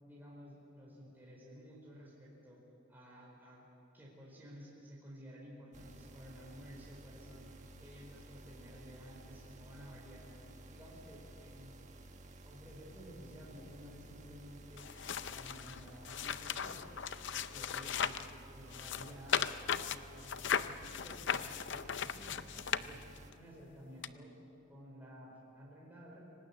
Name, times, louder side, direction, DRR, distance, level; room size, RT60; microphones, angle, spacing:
voice 1, 0.0-2.6 2.9-3.6 3.9-10.3 10.7-11.7 12.4-14.9 15.1-16.9 17.2-18.2 18.5-19.5 19.9-24.3 24.7-26.3, equal, 10° right, -4 dB, 4.6 m, -53 dB
sound 1, 5.7-23.3, right 2 dB, 35° right, 1.5 m, -54 dB
sound 2, 14.8-18.3 18.7-23.3 24.0-24.1, left 8 dB, 55° left, 0.6 m, -37 dB
25.5 x 18.0 x 8.8 m, 2.8 s
head